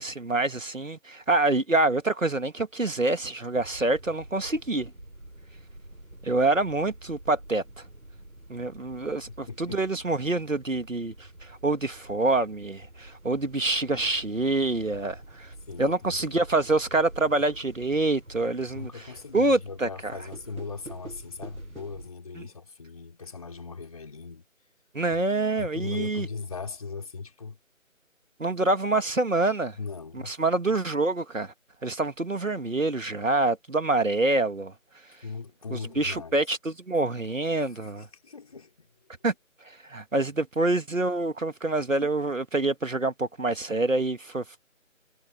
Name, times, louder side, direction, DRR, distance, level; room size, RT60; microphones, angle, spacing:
voice 1, 0.0-4.9 6.2-7.8 8.5-15.5 15.8-19.1 19.3-20.1 22.4-22.5 24.9-26.3 28.4-29.8 30.2-31.5 31.8-34.7 35.7-38.1 39.2-39.3 39.6-44.6, right 2 dB, 70° right, 2.2 m, -26 dB
sound 1, 3.5-22.1, right 1 dB, 90° right, 4.7 m, -47 dB
voice 2, 9.3-9.8 15.7-16.4 18.7-24.4 25.1-25.2 25.6-27.6 29.8-30.3 35.2-36.4 37.8-38.9, left 4 dB, 25° left, 4.1 m, -39 dB
figure-of-eight pair, 165°, 41 cm